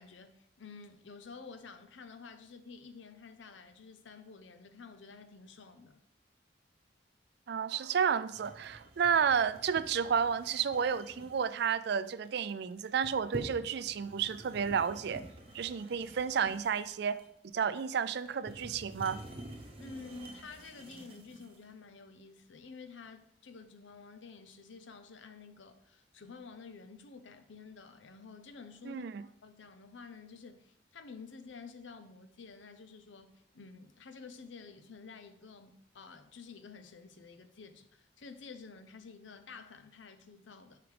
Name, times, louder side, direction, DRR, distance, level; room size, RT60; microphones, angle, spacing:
voice 1, 0.0-6.0 19.8-29.0 29.4-40.8, left 4 dB, 85° left, 0.7 m, -50 dB
voice 2, 7.5-15.2 15.5-17.2 17.5-19.2 28.8-29.2, right 7 dB, 60° right, 0.4 m, -31 dB
sound 1, 8.3-21.6, right 1 dB, 30° right, 1.1 m, -49 dB
8.0 x 4.9 x 3.4 m
head